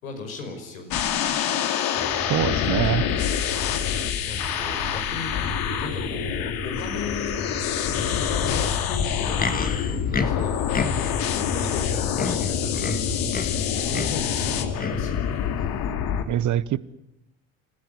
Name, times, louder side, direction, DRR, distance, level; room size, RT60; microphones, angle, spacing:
voice 1, 0.0-1.6 3.6-7.5 8.2-15.5, left 4 dB, 85° left, 5.4 m, -38 dB
sound 1, 0.9-16.2, left 9 dB, 60° left, 2.5 m, -26 dB
sound 2, 1.9-14.8, right 4 dB, 25° right, 3.6 m, -39 dB
voice 2, 2.3-3.1 16.3-16.8, right 12 dB, 45° right, 1.1 m, -24 dB
Livestock farm animals working animals, 9.1-11.3 11.8-11.9 12.1-13.6 13.9-14.3 14.8-15.1 15.8-15.9, left 4 dB, 20° left, 2.2 m, -30 dB
27.5 x 15.0 x 9.8 m
hypercardioid pair, 65°, 40 cm